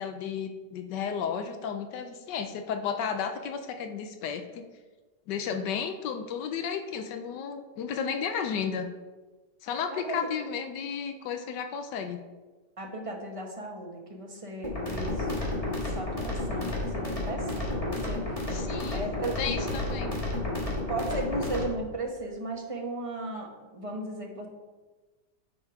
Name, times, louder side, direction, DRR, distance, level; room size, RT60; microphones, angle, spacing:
voice 1, 0.0-4.7 5.3-8.9 9.6-12.2 18.5-19.0 19.4-20.1, left 7 dB, 85° left, 7 dB, 1.3 m, -33 dB
voice 2, 9.9-10.3 12.8-15.3 15.6-18.4 18.9-19.4 19.9-20.0 20.9-24.5, right 2 dB, 25° right, 0 dB, 1.0 m, -36 dB
sound 1, 14.6-21.6, left 2 dB, 20° left, 1.8 m, -31 dB
9.5 x 4.9 x 4.8 m, 1.3 s
omnidirectional pair, 1.8 m